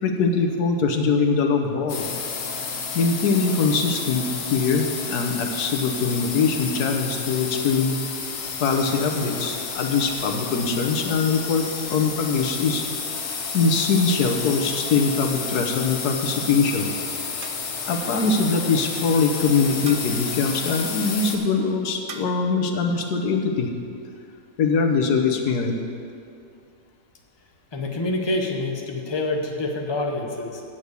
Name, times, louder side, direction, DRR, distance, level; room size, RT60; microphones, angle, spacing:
voice 1, 0.0-2.2 2.9-8.0 8.6-12.9 13.5-17.0 17.9-23.7 24.6-25.7, left 4 dB, 90° left, 4 dB, 1.5 m, -22 dB
sound 1, 1.9-21.4, left 5 dB, 60° left, 1.3 m, -31 dB
sound 2, 17.4-18.0 19.9-20.4 22.1-22.5, right 5 dB, 80° right, 0.4 m, -42 dB
voice 2, 27.7-30.6, left 2 dB, 25° left, 2 dB, 0.7 m, -27 dB
7.5 x 7.0 x 8.1 m, 2.4 s
omnidirectional pair, 1.6 m